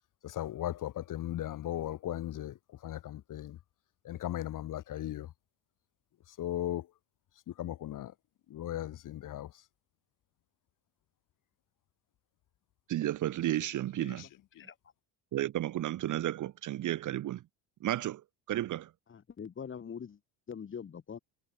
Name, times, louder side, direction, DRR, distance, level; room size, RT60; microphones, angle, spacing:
voice 1, 0.2-3.6 4.0-5.3 6.3-6.9 7.5-8.1 8.5-9.5 14.0-14.3, left 13 dB, 45° left, 2.1 m, -37 dB
voice 2, 12.9-14.3 15.3-17.4 17.8-18.2 18.5-18.9, right 13 dB, 45° right, 1.2 m, -32 dB
voice 3, 19.1-20.2 20.5-21.2, left 7 dB, 30° left, 7.3 m, -43 dB
cardioid pair, 165°, 42 cm